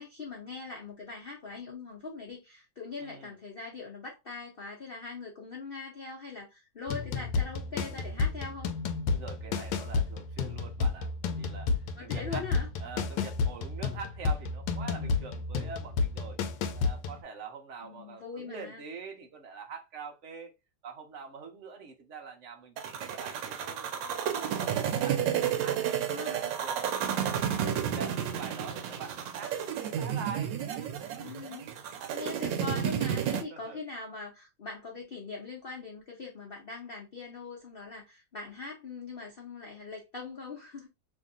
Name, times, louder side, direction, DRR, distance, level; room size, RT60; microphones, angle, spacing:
voice 1, 0.0-8.7 12.0-12.7 13.2-13.3 17.8-18.8 25.8-26.5 27.6-27.9 31.2-31.7 32.1-40.9, left 4 dB, 60° left, 0.5 m, -42 dB
voice 2, 3.0-3.3 7.6-8.3 9.1-12.5 12.8-16.4 16.7-20.5 20.8-22.7 23.1-25.9 26.3-27.7 27.9-29.6 30.0-30.6 33.5-33.8, right 5 dB, 55° right, 0.8 m, -44 dB
sound 1, 6.9-17.2, left 4 dB, 80° left, 1.3 m, -31 dB
sound 2, 22.8-33.4, right 9 dB, 75° right, 1.3 m, -31 dB
3.1 x 2.7 x 3.6 m
omnidirectional pair, 2.1 m